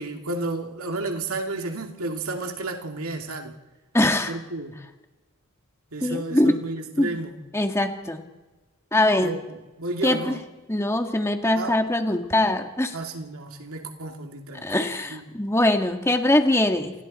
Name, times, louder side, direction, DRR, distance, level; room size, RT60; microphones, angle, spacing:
voice 1, 0.0-3.6 4.3-4.8 5.9-7.4 9.2-10.4 11.6-11.8 12.9-15.2, right 2 dB, 75° right, 2.7 m, -32 dB
voice 2, 3.9-4.3 6.0-6.5 7.0-7.1 7.5-8.2 8.9-9.3 10.0-10.4 10.7-12.9 14.6-16.9, left 1 dB, 10° left, 1.8 m, -22 dB
29.0 x 28.5 x 4.4 m
head